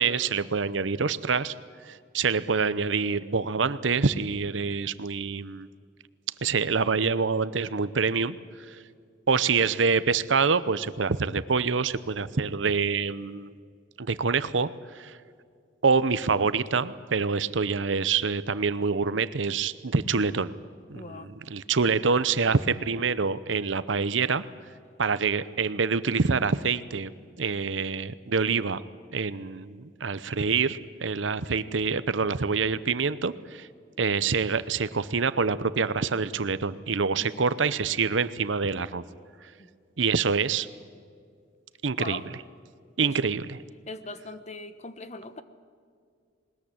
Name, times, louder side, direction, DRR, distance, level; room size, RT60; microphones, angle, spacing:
voice 1, 0.0-1.5 1.9-5.7 6.4-8.4 8.7-8.8 9.3-13.5 14.0-15.2 15.8-20.5 20.9-24.5 25.0-27.1 27.4-28.8 29.1-33.7 34.0-39.0 39.4-39.5 40.0-40.7 41.8-42.2 43.0-43.4, right 5 dB, 85° right, 15 dB, 0.8 m, -26 dB
voice 2, 20.9-21.3 37.2-37.5 39.6-39.7 42.0-42.2 43.0-43.2 43.9-45.4, left 2 dB, 40° left, 11 dB, 1.1 m, -40 dB
20.5 x 20.5 x 8.7 m, 2.2 s
head